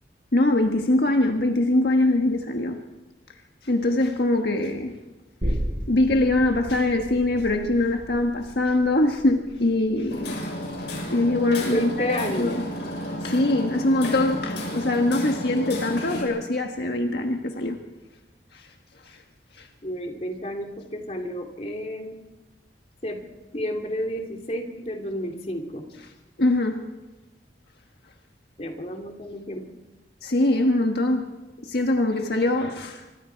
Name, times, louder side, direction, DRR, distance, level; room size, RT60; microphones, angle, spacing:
voice 1, 0.3-2.8 3.6-4.9 5.4-5.6 5.9-10.6 11.1-12.6 13.2-17.8 18.5-18.7 19.0-19.2 19.6-19.7 26.4-26.8 30.2-31.3 31.6-33.2, left 2 dB, 65° left, 3 dB, 1.5 m, -23 dB
sound 1, 5.4-12.7 13.1-13.2, equal, 50° right, 6.6 m, -35 dB
Hammer, 10.1-16.2, left 1 dB, 85° left, 7.2 m, -32 dB
voice 2, 11.6-12.6 19.8-22.2 23.0-23.2 23.5-25.8 28.6-29.6, equal, 35° left, 3 dB, 2.8 m, -31 dB
26.0 x 24.5 x 4.7 m, 1.1 s
head